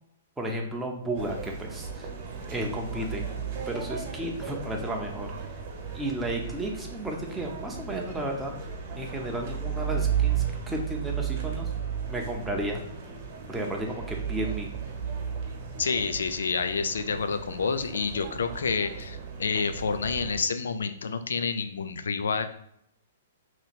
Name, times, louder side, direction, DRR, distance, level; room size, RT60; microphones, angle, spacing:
voice 1, 0.4-2.1 2.5-3.2 3.7-5.3 5.9-8.5 9.0-11.7 12.1-12.8 13.5-14.7, right 1 dB, 5° right, 0 dB, 0.6 m, -33 dB
sound 1, 1.1-20.4, right 8 dB, 45° right, 1.0 m, -34 dB
voice 2, 15.8-22.5, left 5 dB, 85° left, 10 dB, 0.4 m, -29 dB
2.9 x 2.8 x 4.1 m, 0.73 s
hypercardioid pair, 145°, 0 cm